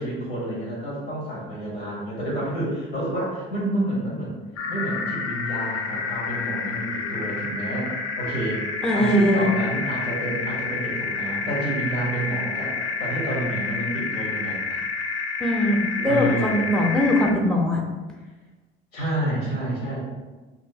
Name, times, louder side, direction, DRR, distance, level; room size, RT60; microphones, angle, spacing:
voice 1, 0.0-4.4 4.7-8.6 8.9-14.6 16.0-16.9 18.9-20.0, right 1 dB, 90° left, -4 dB, 1.2 m, -29 dB
sound 1, 4.6-17.3, left 4 dB, 55° left, 0.5 m, -29 dB
voice 2, 8.8-9.5 15.4-17.8, equal, ahead, 0 dB, 0.6 m, -21 dB
2.9 x 2.7 x 2.7 m, 1.2 s
hypercardioid pair, 55°, 29 cm